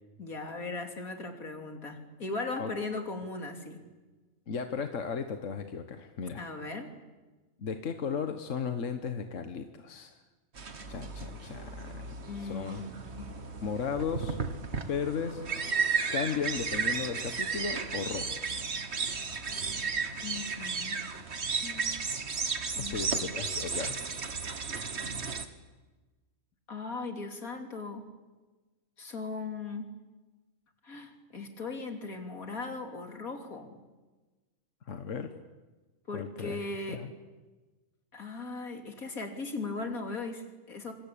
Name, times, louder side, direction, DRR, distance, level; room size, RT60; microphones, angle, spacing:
voice 1, 0.2-3.9 6.4-6.9 12.2-12.8 13.1-13.3 20.2-21.0 21.6-21.9 22.7-22.9 26.7-28.1 29.0-29.9 30.8-33.8 36.1-37.1 38.1-40.9, left 3 dB, 80° left, 5 dB, 3.5 m, -38 dB
voice 2, 4.5-6.5 7.6-10.2 10.9-12.1 12.4-12.8 13.6-14.4 14.9-15.4 16.1-18.6 22.8-24.0 34.9-35.3 36.1-36.6 36.9-37.1, left 6 dB, 65° left, 7 dB, 1.6 m, -35 dB
sound 1, 10.6-25.5, right 5 dB, 50° right, 1.9 m, -34 dB
26.5 x 25.0 x 8.6 m, 1.2 s
omnidirectional pair, 1.5 m